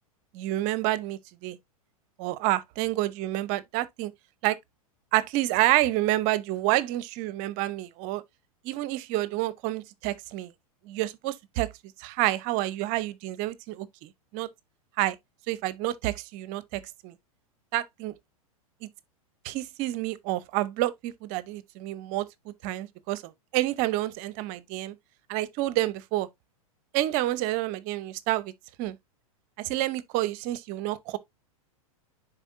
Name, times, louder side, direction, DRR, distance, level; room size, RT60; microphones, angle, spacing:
voice 1, 0.3-1.6 2.2-4.1 4.4-4.6 5.1-8.2 8.6-10.5 10.9-11.7 12.0-14.5 15.0-15.2 15.5-17.1 17.7-18.1 18.8-18.9 19.4-22.3 22.6-25.0 25.3-26.3 26.9-28.5 28.8-29.0 29.6-31.2, right 16 dB, 45° right, 0.8 m, -28 dB
10.0 x 4.4 x 2.6 m
hypercardioid pair, 100°, 19 cm